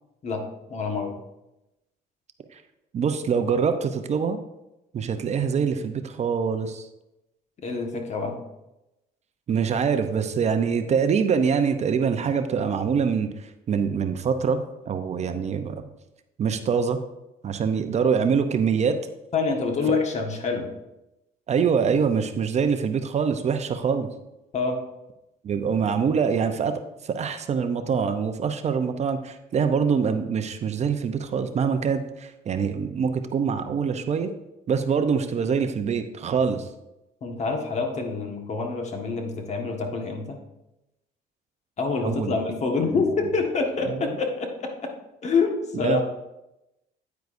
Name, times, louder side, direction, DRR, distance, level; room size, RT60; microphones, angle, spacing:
voice 1, 0.2-1.2 7.6-8.4 19.3-20.7 24.5-24.8 37.2-40.4 41.8-44.9 45.2-46.0, left 4 dB, 40° left, 3 dB, 1.5 m, -26 dB
voice 2, 2.9-4.4 4.9-6.9 9.5-13.3 13.7-14.6 14.9-15.8 16.4-17.0 17.4-19.0 21.5-24.1 25.4-26.7 27.0-34.3 34.7-36.6 42.0-42.4 42.9-43.0 43.9-44.1 45.8-46.0, right 6 dB, 40° right, 8 dB, 0.6 m, -24 dB
9.4 x 9.2 x 2.6 m, 0.93 s
cardioid pair, 110°, 17 cm